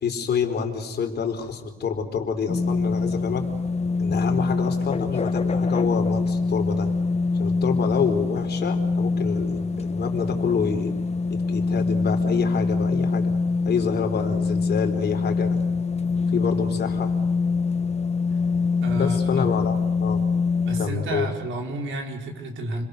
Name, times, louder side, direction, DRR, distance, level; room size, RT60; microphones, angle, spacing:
voice 1, 0.0-3.4 4.0-6.9 7.4-10.9 11.5-13.3 13.6-15.6 16.3-17.1 18.9-20.2 20.8-21.3, left 6 dB, 55° left, 4 dB, 4.1 m, -27 dB
sound 1, 2.5-20.9, left 4 dB, 30° left, 1.4 m, -24 dB
voice 2, 18.8-19.5 20.6-22.9, right 1 dB, 75° right, 2 dB, 5.0 m, -31 dB
29.5 x 22.0 x 6.8 m, 1.2 s
cardioid pair, 90°, 20 cm